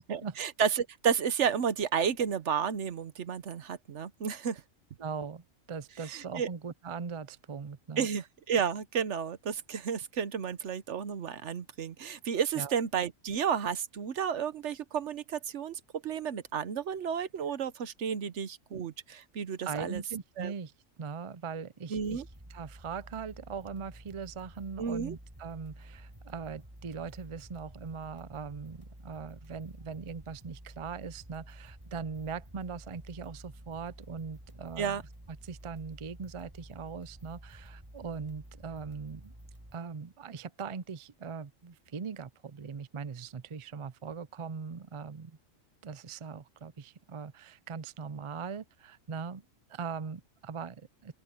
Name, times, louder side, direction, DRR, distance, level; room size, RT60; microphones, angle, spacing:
voice 1, 0.1-4.6 6.1-6.5 8.0-20.0 20.4-20.5 21.9-22.2 24.8-25.2 34.8-35.0, right 7 dB, 65° right, 1.2 m, -32 dB
voice 2, 5.0-8.1 12.5-12.7 19.6-20.7 21.0-22.2 22.5-35.0 35.3-39.3 39.7-45.4 45.8-49.4 49.7-51.1, right 5 dB, 40° right, 0.4 m, -40 dB
sound 1, 21.9-39.8, right 1 dB, 15° right, 4.3 m, -51 dB
open air
omnidirectional pair, 1.4 m